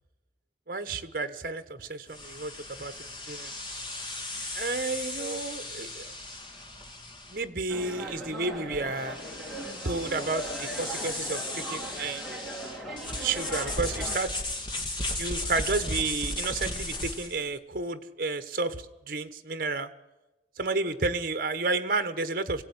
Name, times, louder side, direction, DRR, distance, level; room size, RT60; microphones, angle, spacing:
voice 1, 0.7-2.5 2.8-3.5 4.5-6.1 7.3-9.2 9.8-12.2 13.2-14.4 15.2-19.9 20.6-22.6, right 3 dB, 50° right, 10 dB, 1.2 m, -31 dB
sound 1, 2.1-17.5, left 2 dB, 25° left, 2.2 m, -36 dB
sound 2, 7.7-14.2, right 1 dB, ahead, 2.9 m, -39 dB
23.0 x 16.5 x 9.8 m, 1.0 s
head